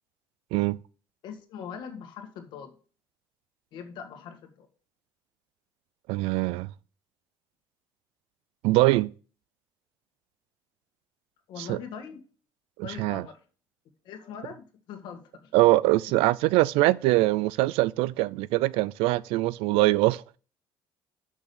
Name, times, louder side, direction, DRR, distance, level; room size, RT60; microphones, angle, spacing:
voice 1, 1.2-2.7 3.7-4.7 11.5-12.2 12.8-13.4 14.0-15.5, left 7 dB, 55° left, 1.7 m, -41 dB
voice 2, 6.1-6.7 8.6-9.1 11.7-11.8 12.8-13.2 15.5-20.4, right 18 dB, 85° right, 0.4 m, -23 dB
6.3 x 6.0 x 6.8 m
cardioid pair, 180°, 9 cm